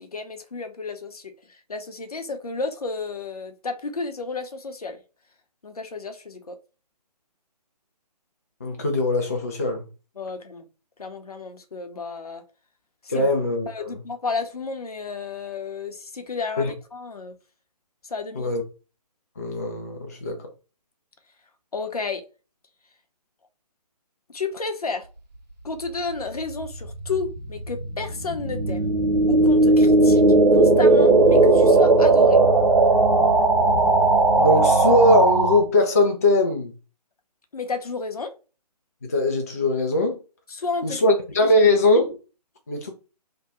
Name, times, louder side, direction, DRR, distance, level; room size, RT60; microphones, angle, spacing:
voice 1, 0.0-5.0 5.6-6.6 10.2-10.6 11.0-12.4 13.0-13.3 13.7-17.3 18.0-18.5 21.7-22.2 24.3-25.1 25.6-29.0 29.3-30.2 30.5-32.4 37.5-38.3 40.5-41.0, left 4 dB, 65° left, 0.7 m, -32 dB
voice 2, 8.6-9.9 13.1-14.0 16.6-16.7 18.4-18.6 19.4-20.5 34.4-36.7 39.0-40.2 40.8-42.2 42.7-42.9, left 1 dB, 25° left, 0.3 m, -21 dB
sound 1, 26.3-35.6, right 2 dB, 85° right, 0.7 m, -17 dB
2.8 x 2.2 x 3.7 m
figure-of-eight pair, 140°, 21 cm